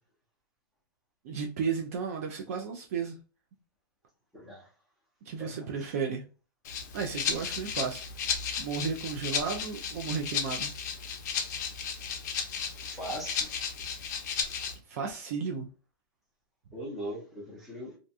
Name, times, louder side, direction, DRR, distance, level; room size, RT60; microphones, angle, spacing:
voice 1, 1.2-3.1 5.3-6.2 6.9-8.0 8.6-10.7 14.9-15.7, right 5 dB, 40° right, 0.4 m, -33 dB
voice 2, 4.3-4.7 5.4-5.9 12.8-13.5 16.7-18.0, equal, ahead, 0.7 m, -40 dB
Rattle (instrument), 6.6-14.8, left 7 dB, 50° left, 0.5 m, -34 dB
2.5 x 2.3 x 2.5 m
hypercardioid pair, 165°, 12 cm